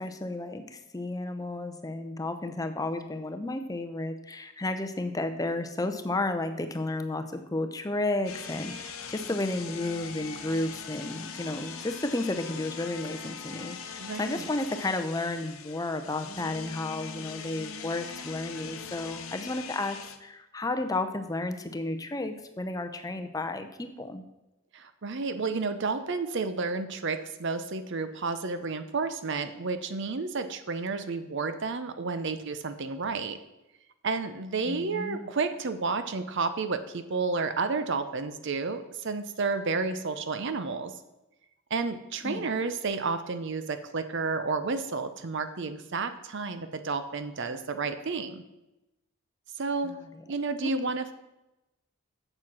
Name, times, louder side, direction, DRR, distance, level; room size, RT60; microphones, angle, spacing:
voice 1, 0.0-24.2 34.7-35.3 42.2-42.5 49.8-50.0, left 2 dB, 15° left, 8 dB, 0.6 m, -32 dB
sound 1, 8.2-20.2, left 6 dB, 75° left, 0.9 m, -41 dB
voice 2, 14.0-14.5 24.7-33.4 34.0-40.9 41.7-48.4 49.6-49.9 50.3-51.1, right 4 dB, 55° right, 10 dB, 0.6 m, -31 dB
7.7 x 7.4 x 6.0 m, 0.95 s
head